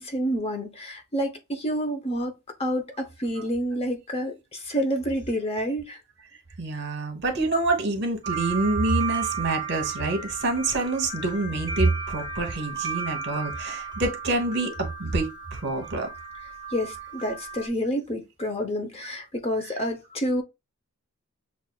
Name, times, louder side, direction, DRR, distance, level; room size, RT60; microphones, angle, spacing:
voice 1, 0.0-2.3 2.6-6.0 16.7-20.4, equal, 25° left, 0.6 m, -28 dB
voice 2, 6.6-16.1, right 2 dB, 50° right, 1.0 m, -26 dB
sound 1, 8.2-17.7, right 6 dB, 20° right, 1.0 m, -34 dB
7.2 x 2.4 x 2.3 m
head